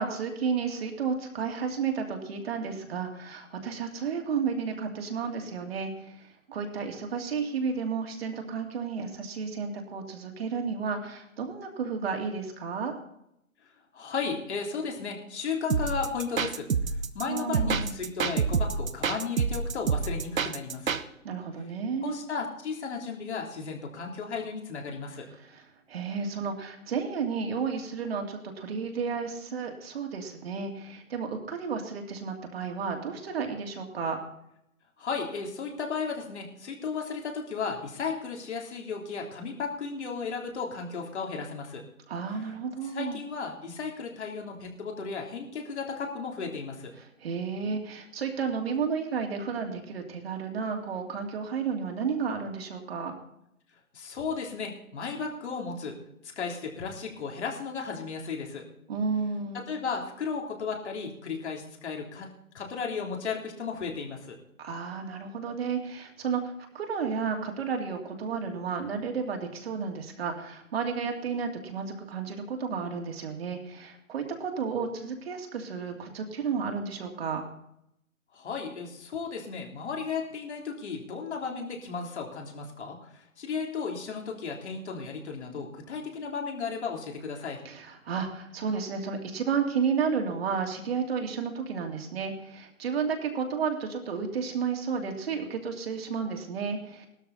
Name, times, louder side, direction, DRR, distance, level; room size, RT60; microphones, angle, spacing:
voice 1, 0.0-13.0 17.3-17.9 21.2-22.2 25.4-34.2 42.1-43.2 47.0-53.1 58.9-59.6 64.6-77.4 87.6-97.1, right 6 dB, 45° right, 3 dB, 2.6 m, -32 dB
voice 2, 13.9-16.7 17.1-21.0 22.0-25.3 35.0-41.8 42.8-46.9 53.9-56.0 56.3-58.6 59.5-62.3 62.5-64.4 78.3-87.6, left 5 dB, 50° left, 1 dB, 3.6 m, -34 dB
sound 1, 15.7-21.0, right 5 dB, 70° right, 1.2 m, -28 dB
18.0 x 13.0 x 4.2 m, 0.77 s
figure-of-eight pair, 145°, 42 cm